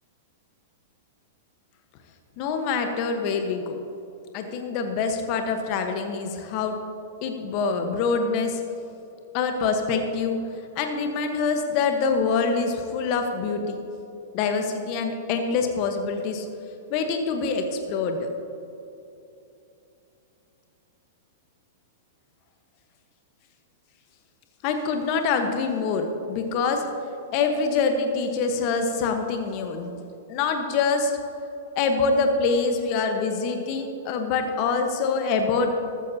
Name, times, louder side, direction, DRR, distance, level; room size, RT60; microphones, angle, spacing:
voice 1, 2.4-3.8 4.3-6.8 7.2-8.6 9.3-10.4 10.8-13.8 14.3-16.5 16.9-18.3 24.6-26.8 27.3-29.9 30.3-31.1 31.8-35.7, left 4 dB, 45° left, 5 dB, 1.2 m, -25 dB
14.5 x 13.5 x 2.9 m, 2.8 s
hypercardioid pair, 110°, 0 cm